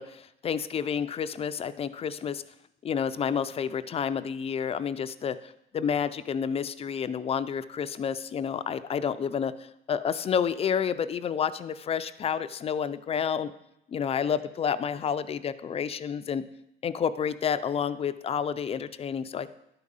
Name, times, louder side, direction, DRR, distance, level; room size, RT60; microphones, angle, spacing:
voice 1, 0.0-2.4 2.8-9.5 9.9-13.5 13.9-16.4 16.8-19.5, left 7 dB, 35° left, 12 dB, 0.4 m, -30 dB
11.5 x 4.9 x 5.4 m, 0.83 s
cardioid pair, 110°, 17 cm